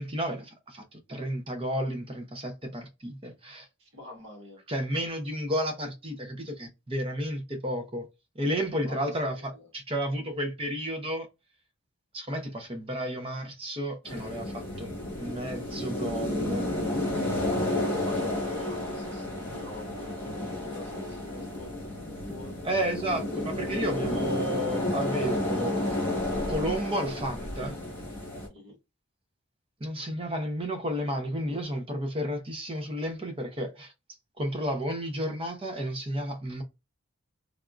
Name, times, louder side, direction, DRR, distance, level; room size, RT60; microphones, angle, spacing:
voice 1, 0.0-3.7 4.7-8.1 8.3-11.3 12.1-16.7 22.6-25.8 26.5-27.8 29.8-33.9 34.4-36.6, equal, 25° right, 0.7 m, -32 dB
voice 2, 3.8-4.6 8.8-9.7 17.6-22.7 28.5-28.8, left 1 dB, 55° right, 1.4 m, -45 dB
sound 1, 14.1-28.5, left 1 dB, 10° left, 1.1 m, -31 dB
3.4 x 2.4 x 2.4 m
head